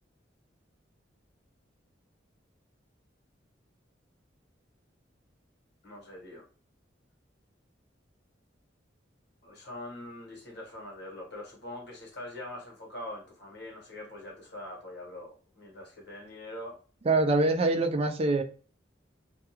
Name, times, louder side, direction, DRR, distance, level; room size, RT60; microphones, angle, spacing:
voice 1, 5.8-6.4 9.4-16.8, left 1 dB, 60° left, 1.1 m, -43 dB
voice 2, 17.0-18.4, right 2 dB, 35° right, 0.4 m, -24 dB
2.3 x 2.3 x 2.8 m
head